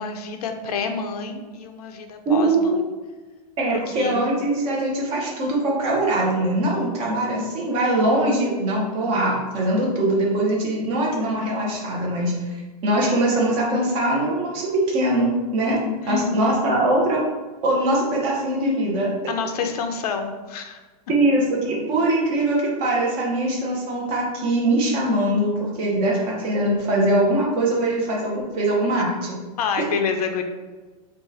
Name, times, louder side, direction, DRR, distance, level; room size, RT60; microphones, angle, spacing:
voice 1, 0.0-2.5 4.0-4.2 16.0-16.5 19.3-20.8 29.6-30.4, left 5 dB, 75° left, 5 dB, 0.6 m, -27 dB
voice 2, 2.2-2.8 3.6-12.3 12.8-15.8 16.1-17.2 17.6-19.1 21.1-29.4, right 1 dB, 30° right, -3 dB, 1.1 m, -22 dB
4.7 x 2.5 x 4.1 m, 1.3 s
supercardioid pair, 170°, 20 cm